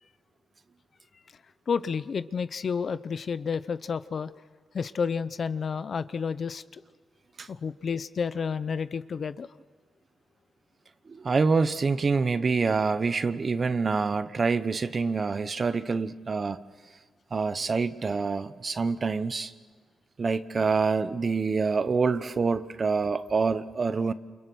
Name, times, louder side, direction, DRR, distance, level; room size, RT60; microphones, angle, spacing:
voice 1, 1.7-4.3 4.7-6.8 7.5-9.5, left 6 dB, 45° left, 14 dB, 0.7 m, -30 dB
voice 2, 11.1-16.6 17.3-19.5 20.2-24.1, right 4 dB, 35° right, 13 dB, 1.0 m, -26 dB
29.5 x 29.0 x 6.3 m, 1.5 s
wide cardioid pair, 155°, 0 cm